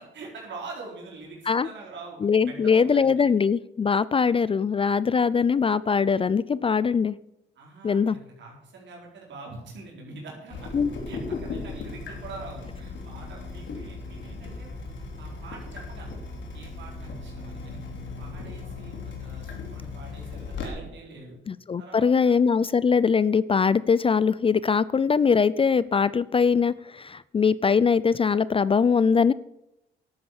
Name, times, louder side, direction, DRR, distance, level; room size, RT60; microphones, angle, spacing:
voice 1, 0.0-3.3 7.6-10.7 11.1-14.7 15.2-16.2 16.5-17.8 18.2-21.4 21.8-22.3, right 3 dB, 65° right, -2 dB, 4.2 m, -44 dB
voice 2, 2.2-7.2 7.8-8.2 10.7-10.9 21.5-29.3, left 6 dB, 30° left, 19 dB, 0.4 m, -22 dB
Water tap faucet / Drip, 10.5-20.7, left 4 dB, 70° left, 3.5 m, -37 dB
11.5 x 8.6 x 7.2 m, 0.86 s
cardioid pair, 90°, 20 cm